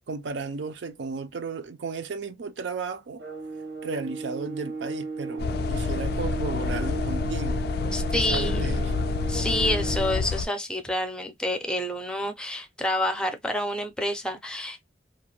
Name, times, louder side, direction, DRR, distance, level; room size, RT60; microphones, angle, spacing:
voice 1, 0.1-3.2 3.8-7.6 8.1-8.9, right 4 dB, 75° right, 0.5 m, -34 dB
sound 1, 3.2-10.2, right 4 dB, 90° right, 0.9 m, -35 dB
sound 2, 5.4-10.5, left 4 dB, 60° left, 0.3 m, -28 dB
voice 2, 7.9-8.7 9.3-14.8, left 1 dB, 5° left, 0.5 m, -28 dB
2.5 x 2.1 x 3.0 m
head